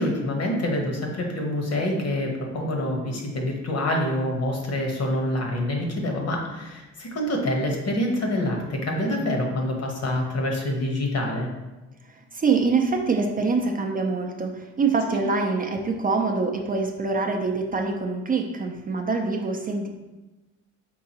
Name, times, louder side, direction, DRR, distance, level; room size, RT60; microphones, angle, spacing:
voice 1, 0.0-11.5 15.1-15.2, left 1 dB, 55° left, 1 dB, 1.0 m, -26 dB
voice 2, 12.1-19.9, right 4 dB, 30° right, 2 dB, 0.5 m, -25 dB
4.6 x 3.8 x 2.8 m, 1.1 s
cardioid pair, 90°, 30 cm